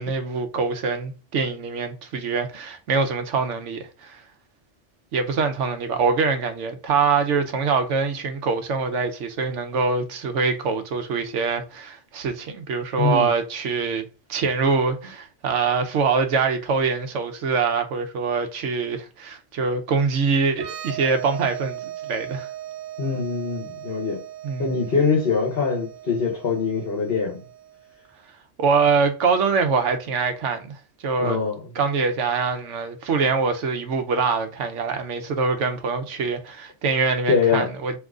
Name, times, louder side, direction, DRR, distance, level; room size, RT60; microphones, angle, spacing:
voice 1, 0.0-4.2 5.1-14.0 14.3-22.5 24.4-24.8 28.6-30.7 31.0-31.4 31.7-37.9, right 5 dB, 80° right, 1.1 m, -24 dB
voice 2, 13.0-13.3 23.0-24.2 24.6-27.4 31.2-31.6 35.3-35.4 37.3-37.7, left 5 dB, 55° left, 1.2 m, -23 dB
sound 1, 20.5-28.0, right 11 dB, 60° right, 0.9 m, -38 dB
3.7 x 3.1 x 3.6 m
omnidirectional pair, 1.2 m